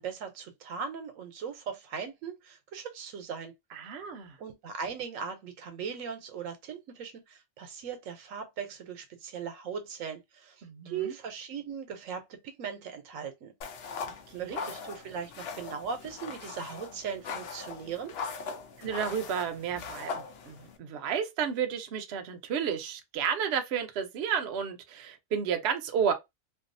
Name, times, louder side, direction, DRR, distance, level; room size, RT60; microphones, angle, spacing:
voice 1, 0.0-3.5 4.4-13.5 14.3-18.2, right 6 dB, 85° right, 1.0 m, -39 dB
voice 2, 3.7-4.4 10.6-11.1 14.3-14.6 18.8-26.1, right 7 dB, 65° right, 0.8 m, -32 dB
sound 1, 13.6-20.8, left 5 dB, 60° left, 0.7 m, -40 dB
2.6 x 2.3 x 2.5 m
omnidirectional pair, 1.3 m